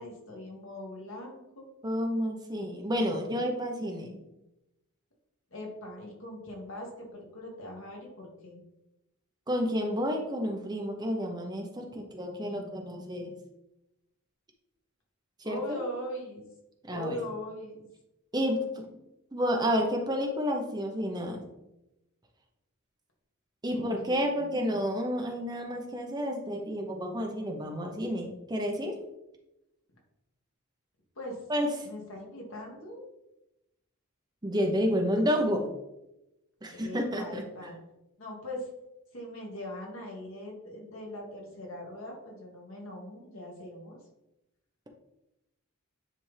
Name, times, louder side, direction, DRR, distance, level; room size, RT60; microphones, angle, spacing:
voice 1, 0.0-1.7 5.5-8.6 15.4-16.5 16.9-17.9 23.7-24.5 31.2-31.4 31.8-33.1 36.7-37.7 38.2-38.7 39.1-44.0, left 1 dB, 65° left, -1 dB, 1.7 m, -41 dB
voice 2, 1.8-4.2 9.5-13.3 15.4-15.8 16.8-17.2 18.3-18.8 19.3-21.4 23.6-29.0 31.5-31.7 34.4-35.7 36.6-37.4, equal, 20° right, 2 dB, 0.8 m, -30 dB
9.8 x 3.5 x 3.3 m, 0.92 s
head